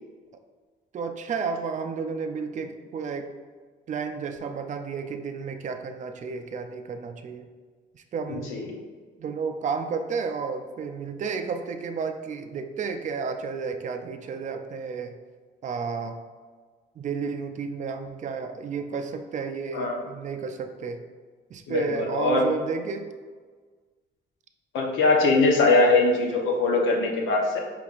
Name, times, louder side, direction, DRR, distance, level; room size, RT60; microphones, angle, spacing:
voice 1, 0.9-3.3 3.9-7.5 7.9-8.6 9.2-15.1 15.6-16.2 17.0-21.0 21.5-23.1, right 5 dB, 40° right, 6 dB, 0.4 m, -32 dB
voice 2, 8.3-8.6 19.7-20.0 21.7-22.4 24.7-27.6, left 3 dB, 80° left, 0 dB, 0.8 m, -22 dB
5.0 x 3.3 x 2.4 m, 1.5 s
cardioid pair, 90°, 20 cm